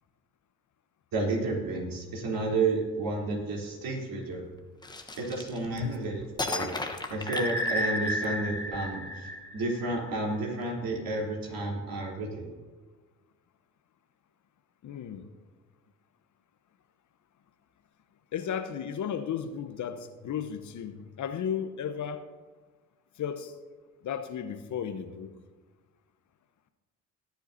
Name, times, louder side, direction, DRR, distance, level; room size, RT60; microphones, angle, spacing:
voice 1, 1.1-4.4 5.2-6.7 7.1-12.5, right 3 dB, 55° right, -1 dB, 3.6 m, -31 dB
sound 1, 4.8-6.0 6.4-8.2, left 2 dB, 10° left, 1.1 m, -35 dB
sound 2, 7.3-10.1, equal, 25° right, 3.3 m, -32 dB
voice 2, 14.8-15.3 18.3-22.3 23.2-23.6 24.0-25.3, left 8 dB, 45° left, 9 dB, 1.0 m, -34 dB
18.5 x 10.5 x 2.8 m, 1.3 s
hypercardioid pair, 55°, 41 cm